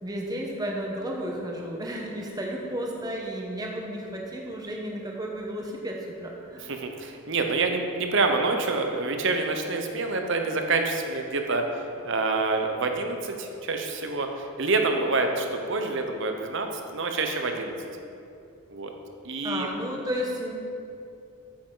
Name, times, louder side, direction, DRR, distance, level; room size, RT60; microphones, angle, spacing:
voice 1, 0.0-6.7 19.4-20.5, equal, 15° right, -1 dB, 0.9 m, -33 dB
voice 2, 6.6-16.7 16.9-17.8 18.7-18.9 19.2-19.7, right 3 dB, 55° right, 4 dB, 0.8 m, -27 dB
8.5 x 7.6 x 3.9 m, 2.6 s
head